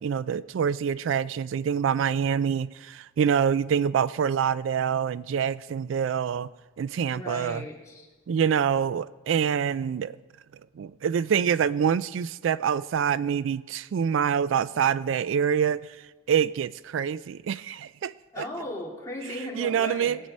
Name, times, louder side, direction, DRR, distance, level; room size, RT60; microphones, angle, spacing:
voice 1, 0.0-6.5 6.8-7.6 8.3-10.2 10.8-15.9 16.3-18.4 19.6-20.2, right 7 dB, 80° right, 0.3 m, -26 dB
voice 2, 7.1-8.1 18.3-20.2, left 1 dB, 15° left, 2.6 m, -36 dB
18.0 x 8.8 x 5.3 m
head